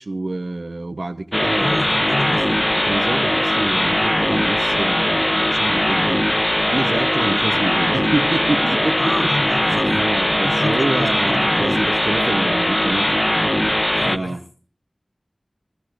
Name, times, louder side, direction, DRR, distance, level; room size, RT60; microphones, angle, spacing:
voice 1, 0.0-1.9 2.8-6.2 6.7-9.3 9.9-13.3 14.0-14.4, right 2 dB, 75° right, 1.0 m, -27 dB
sound 1, 1.3-14.2, left 1 dB, 15° left, 0.8 m, -19 dB
voice 2, 1.6-2.7 9.0-10.0 10.4-11.9 13.9-14.4, left 1 dB, 80° left, 4.3 m, -29 dB
21.0 x 14.0 x 2.5 m
wide cardioid pair, 50°, 0 cm